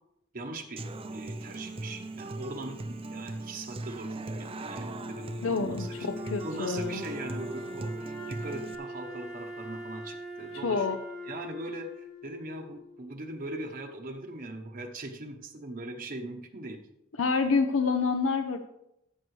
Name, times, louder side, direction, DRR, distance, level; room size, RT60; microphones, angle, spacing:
voice 1, 0.3-0.8 1.1-6.1 6.4-10.9 11.3-16.8, right 2 dB, 45° right, 3 dB, 0.9 m, -40 dB
Human voice / Acoustic guitar, 0.8-8.7, right 2 dB, 25° right, 0.5 m, -39 dB
Wind instrument woodwind instrument, 4.3-13.3, left 1 dB, 85° left, 1.8 m, -42 dB
voice 2, 5.4-7.0 10.6-11.0 17.2-18.6, left 4 dB, 70° left, 6 dB, 0.6 m, -27 dB
14.0 x 6.8 x 3.2 m, 0.83 s
head